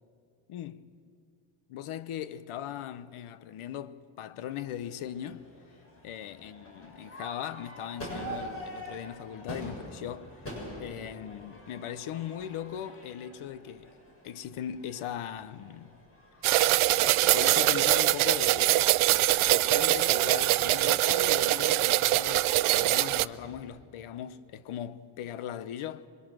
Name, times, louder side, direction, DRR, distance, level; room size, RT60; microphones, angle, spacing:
voice 1, 0.5-0.9 1.7-5.5 6.0-10.3 10.8-13.9 14.2-16.0 17.0-18.9 19.4-26.1, left 10 dB, 90° left, 1.0 m, -39 dB
Crowd / Fireworks, 4.6-23.6, equal, 30° left, 7.1 m, -46 dB
sound 1, 16.4-23.3, right 16 dB, 85° right, 0.6 m, -23 dB
26.5 x 23.5 x 6.3 m
cardioid pair, 140°, 48 cm